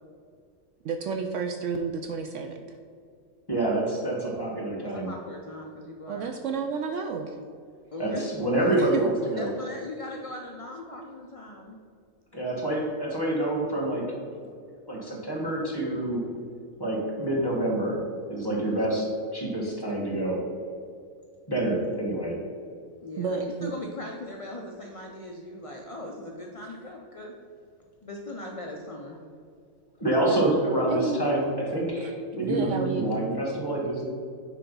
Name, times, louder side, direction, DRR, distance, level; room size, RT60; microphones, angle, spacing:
voice 1, 0.8-2.6 6.1-7.4 8.8-9.0 23.1-23.7 30.9-31.2 32.0-32.1 32.4-33.1, right 5 dB, 70° right, 5 dB, 0.8 m, -31 dB
voice 2, 3.5-5.1 8.0-9.5 12.3-14.0 14.9-16.2 16.8-18.0 18.3-20.4 21.5-22.3 30.0-34.0, right 1 dB, 15° left, -3 dB, 1.6 m, -27 dB
voice 3, 4.8-6.3 7.9-8.3 8.6-8.7 9.4-11.8 23.0-27.3 28.0-29.2, left 1 dB, 45° left, 0 dB, 0.4 m, -39 dB
9.2 x 3.4 x 5.4 m, 2.3 s
omnidirectional pair, 1.5 m